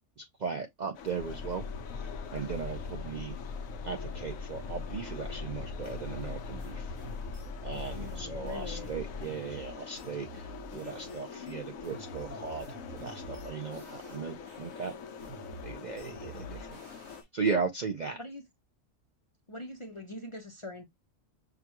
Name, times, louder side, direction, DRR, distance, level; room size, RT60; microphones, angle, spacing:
voice 1, 0.2-1.6 1.9-3.3 3.8-6.9 7.6-14.9 15.6-16.8 17.3-18.2, right 5 dB, 55° right, 0.5 m, -37 dB
sound 1, 0.9-17.2, left 6 dB, 90° left, 1.1 m, -45 dB
sound 2, 1.2-9.2, left 4 dB, 70° left, 1.1 m, -40 dB
sound 3, 5.8-11.2 11.5-14.2 14.5-17.5, right 2 dB, 75° right, 1.8 m, -48 dB
voice 2, 7.9-8.9 16.3-16.7 18.2-18.4 19.5-20.9, left 2 dB, 35° left, 0.5 m, -43 dB
5.8 x 2.3 x 2.9 m
omnidirectional pair, 1.4 m